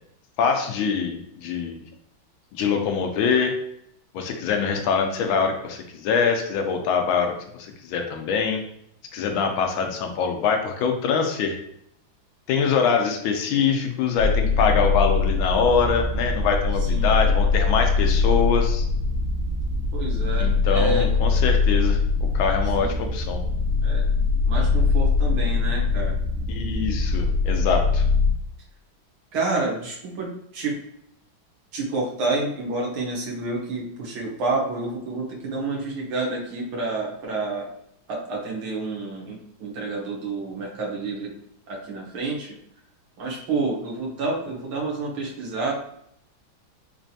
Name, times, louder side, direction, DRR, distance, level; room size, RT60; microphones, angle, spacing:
voice 1, 0.4-1.8 2.5-3.6 4.1-8.6 9.1-11.6 12.5-18.8 20.4-23.4 26.5-28.0, left 6 dB, 80° left, 4 dB, 1.3 m, -24 dB
sound 1, 14.2-28.3, left 4 dB, 50° left, 0.8 m, -22 dB
voice 2, 16.9-17.2 19.9-21.1 22.7-23.0 23.8-24.0 24.5-26.1 29.3-30.3 30.5-30.8 31.7-37.7 38.1-41.3 41.7-42.6 43.2-45.7, right 3 dB, 80° right, -3 dB, 1.9 m, -29 dB
4.2 x 3.0 x 2.7 m, 0.71 s
omnidirectional pair, 2.2 m